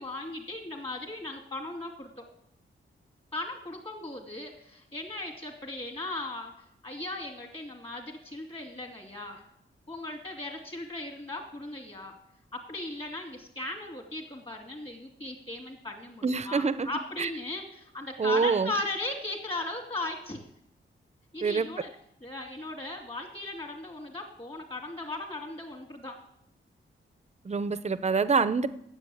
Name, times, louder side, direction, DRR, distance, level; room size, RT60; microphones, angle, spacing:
voice 1, 0.0-2.2 3.3-9.4 9.9-12.1 12.5-20.4 21.3-21.9 22.2-26.2, left 2 dB, 25° left, 2 dB, 2.6 m, -37 dB
voice 2, 16.2-16.9 17.2-17.3 18.2-18.7 21.4-21.7 27.4-28.7, right 4 dB, 30° right, 13 dB, 0.6 m, -26 dB
9.7 x 7.9 x 7.9 m, 0.73 s
wide cardioid pair, 115°, 21 cm